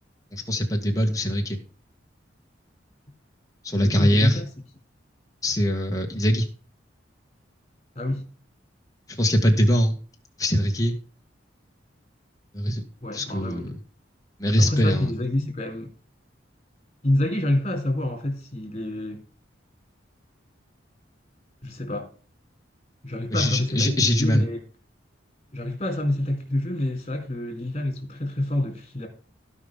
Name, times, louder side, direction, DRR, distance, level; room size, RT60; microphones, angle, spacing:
voice 1, 0.3-1.6 3.6-4.4 5.4-6.5 9.1-10.0 10.4-10.9 12.5-12.8 13.1-13.8 14.4-15.2 23.3-24.4, equal, 20° left, 2.0 m, -22 dB
voice 2, 3.8-4.4 8.0-8.3 13.0-13.7 14.6-15.9 17.0-19.2 21.6-22.1 23.0-24.6 25.5-29.1, left 1 dB, 35° left, 3.9 m, -27 dB
16.5 x 5.8 x 3.7 m
head